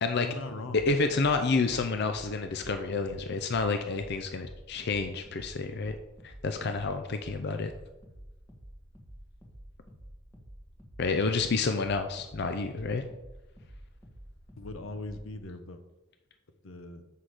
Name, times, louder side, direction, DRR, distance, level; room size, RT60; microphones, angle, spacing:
voice 1, 0.2-0.8 14.6-15.8 16.6-17.0, left 2 dB, 85° left, 8 dB, 0.9 m, -40 dB
sound 1, 0.6-15.4, equal, 15° left, 1.3 m, -50 dB
voice 2, 0.7-6.0 6.2-7.7 11.0-13.0, left 4 dB, 55° left, 7 dB, 0.5 m, -29 dB
7.5 x 6.2 x 4.9 m, 1.0 s
head